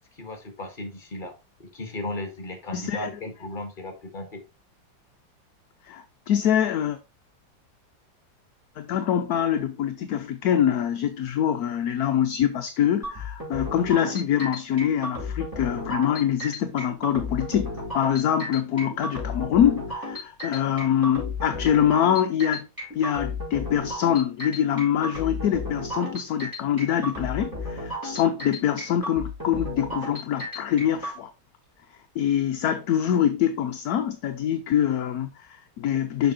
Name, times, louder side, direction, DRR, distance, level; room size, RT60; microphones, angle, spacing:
voice 1, 0.2-4.4, left 1 dB, 30° left, 1.7 m, -36 dB
voice 2, 2.7-3.1 5.8-7.0 8.8-22.7 22.9-31.3 32.2-36.3, left 9 dB, 65° left, 1.0 m, -24 dB
sound 1, 13.0-31.1, left 2 dB, 10° right, 4.7 m, -33 dB
7.0 x 5.5 x 4.2 m
omnidirectional pair, 2.0 m